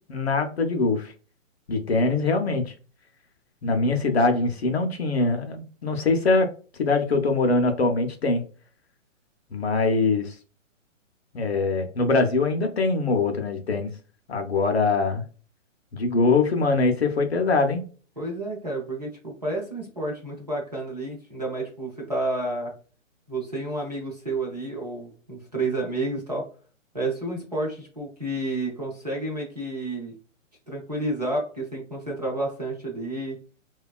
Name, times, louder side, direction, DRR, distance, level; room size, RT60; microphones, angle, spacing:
voice 1, 0.1-1.1 1.7-2.7 3.6-6.5 6.8-8.4 9.5-10.4 11.3-13.9 14.3-15.2 15.9-17.8, left 3 dB, 55° left, 4 dB, 0.5 m, -23 dB
voice 2, 18.2-22.7 23.3-26.5 26.9-30.1 30.7-33.4, right 2 dB, 30° right, -3 dB, 0.5 m, -30 dB
2.8 x 2.2 x 2.3 m, 0.38 s
hypercardioid pair, 180°, 40 cm